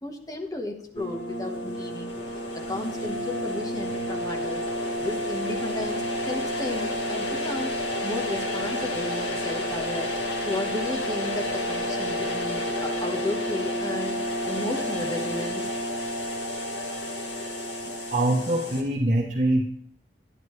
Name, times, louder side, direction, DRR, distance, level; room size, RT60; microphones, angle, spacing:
voice 1, 0.0-2.2 2.5-4.6 5.0-7.7 8.0-10.1 10.4-14.2 14.4-15.7, left 2 dB, 20° left, 2 dB, 1.2 m, -34 dB
sound 1, 0.9-18.8, left 1 dB, 80° left, 1.7 m, -30 dB
voice 2, 17.8-19.6, right 1 dB, 45° right, 0 dB, 1.0 m, -24 dB
11.0 x 10.0 x 3.2 m, 0.69 s
head